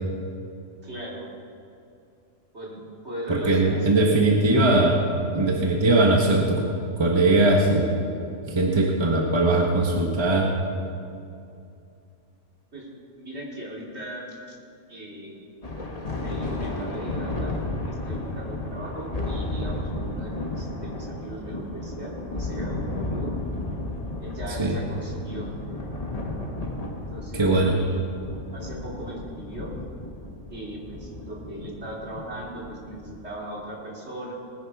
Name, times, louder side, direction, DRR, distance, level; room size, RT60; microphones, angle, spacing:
voice 1, 0.8-1.2 2.5-4.2 12.7-12.9 13.2-14.6 14.9-15.4 15.9-17.5 17.8-23.3 24.2-25.5 27.1-28.0 28.5-29.7 30.5-34.3, right 1 dB, 50° right, -4 dB, 3.1 m, -38 dB
voice 2, 3.3-5.0 5.3-6.6 7.0-7.9 8.5-10.5 24.6-24.8 27.3-27.8, right 2 dB, 20° right, 0 dB, 1.2 m, -20 dB
Thunder, 15.6-33.3, left 2 dB, 30° left, 1.4 m, -33 dB
20.0 x 10.0 x 4.8 m, 2.6 s
omnidirectional pair, 1.4 m